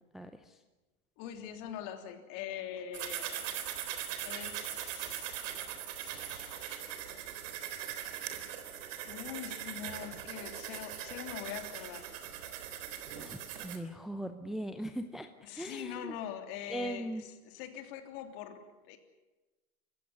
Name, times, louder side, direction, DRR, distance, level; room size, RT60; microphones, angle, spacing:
voice 1, 0.1-0.6 13.2-15.3 15.5-16.1 16.7-17.2, right 1 dB, ahead, 7 dB, 0.7 m, -39 dB
voice 2, 1.2-3.7 4.2-5.4 5.9-7.0 9.1-12.1 15.4-19.0, left 10 dB, 45° left, 7 dB, 3.4 m, -43 dB
sound 1, 2.9-13.8, right 10 dB, 55° right, 3.7 m, -40 dB
26.0 x 15.5 x 9.8 m, 1.2 s
hypercardioid pair, 130°, 45 cm